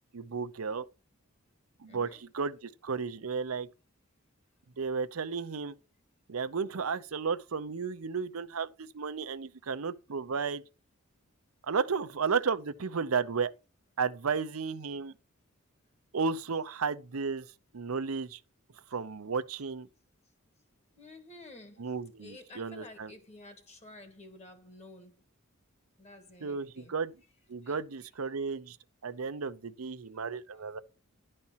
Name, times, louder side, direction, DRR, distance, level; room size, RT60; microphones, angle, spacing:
voice 1, 0.1-0.9 1.8-3.7 4.8-5.7 6.3-10.6 11.7-13.5 14.0-15.1 16.1-18.4 18.9-19.9 21.8-23.1 26.4-27.1 27.5-28.8 29.0-30.8, right 5 dB, 85° right, 0.7 m, -33 dB
voice 2, 1.9-2.2 21.0-25.3 26.0-27.0 27.6-27.8, left 2 dB, 30° left, 1.9 m, -51 dB
11.0 x 4.3 x 5.7 m
head